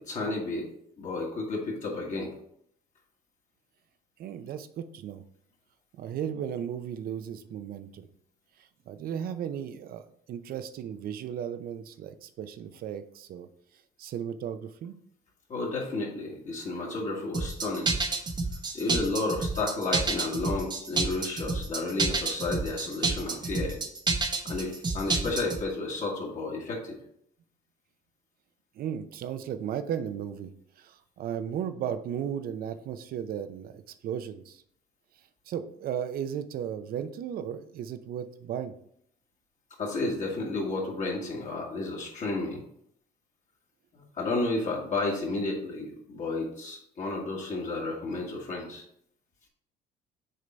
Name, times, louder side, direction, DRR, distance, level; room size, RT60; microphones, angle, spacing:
voice 1, 0.1-0.7 1.0-2.3 15.5-17.9 18.7-23.8 24.4-27.0 39.8-42.6 43.9-48.8, left 2 dB, 45° left, -3 dB, 1.8 m, -32 dB
voice 2, 4.2-5.2 6.0-8.0 8.6-10.0 10.3-13.5 14.0-15.0 28.8-30.5 30.8-34.6 35.5-38.7, right 9 dB, 60° right, 11 dB, 0.6 m, -35 dB
sound 1, 17.3-25.6, right 3 dB, 25° right, 0.9 m, -29 dB
6.6 x 3.8 x 4.4 m, 0.69 s
cardioid pair, 110°, 17 cm